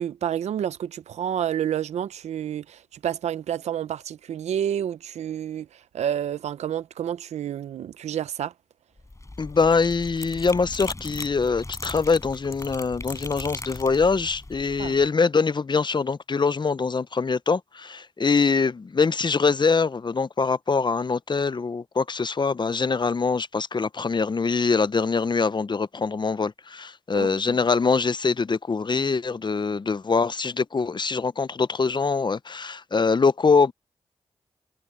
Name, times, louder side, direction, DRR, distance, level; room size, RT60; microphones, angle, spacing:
voice 1, 0.0-8.5 14.8-15.0 27.2-27.6, right 10 dB, 85° right, 0.7 m, -29 dB
sound 1, 9.0-15.1, left 2 dB, 25° left, 6.5 m, -38 dB
voice 2, 9.4-33.7, left 4 dB, 45° left, 0.7 m, -23 dB
supercardioid pair, 45°, 11 cm